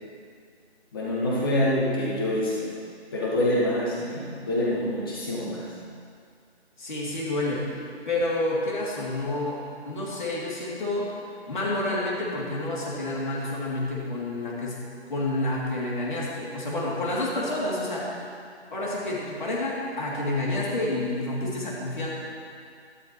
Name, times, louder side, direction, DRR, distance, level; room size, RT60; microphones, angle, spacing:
voice 1, 0.9-2.7 3.1-5.7, left 1 dB, 20° left, -6 dB, 1.7 m, -26 dB
voice 2, 6.8-7.6 8.1-11.2 11.5-14.8 15.1-18.2 18.7-22.1, left 2 dB, 45° left, -5 dB, 2.9 m, -29 dB
14.0 x 12.0 x 3.1 m, 2.3 s
figure-of-eight pair, 165°, 34 cm